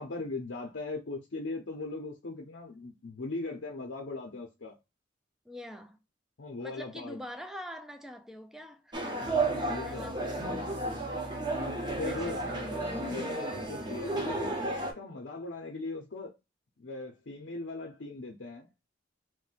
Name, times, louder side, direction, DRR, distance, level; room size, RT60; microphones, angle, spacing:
voice 1, 0.0-4.8 6.4-7.2 9.4-10.1 11.6-16.3 16.8-18.7, left 3 dB, 70° left, 0.6 m, -39 dB
voice 2, 5.5-6.0 6.6-9.3 9.8-10.3 12.1-12.7, equal, ahead, 0.3 m, -44 dB
sound 1, 8.9-14.9, right 2 dB, 25° right, 0.7 m, -33 dB
2.6 x 2.1 x 3.9 m
head